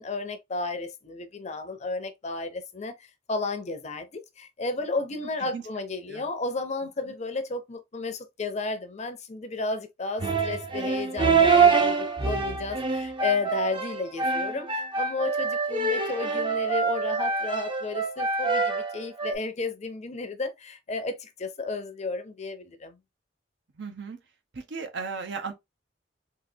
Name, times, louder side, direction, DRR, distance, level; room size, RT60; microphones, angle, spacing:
voice 1, 0.0-23.0, left 3 dB, 40° left, 0.6 m, -33 dB
sound 1, 10.2-19.3, right 5 dB, 25° right, 0.6 m, -25 dB
voice 2, 23.8-24.2 24.5-25.5, right 5 dB, 70° right, 0.7 m, -36 dB
3.9 x 2.5 x 2.6 m
head